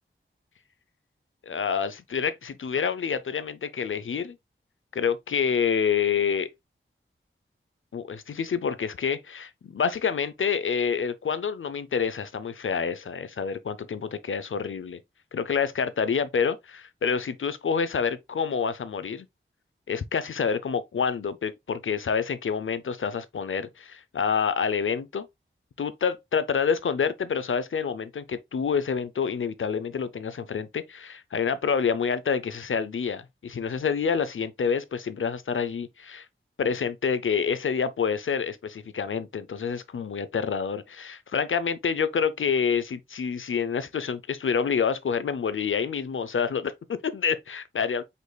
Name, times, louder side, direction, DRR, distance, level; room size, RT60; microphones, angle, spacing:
voice 1, 1.5-4.4 4.9-6.5 7.9-15.0 15.3-19.3 19.9-25.3 25.8-36.3 36.6-48.0, left 6 dB, 70° left, 0.5 m, -27 dB
5.2 x 4.1 x 2.2 m
wide cardioid pair, 85°, 21 cm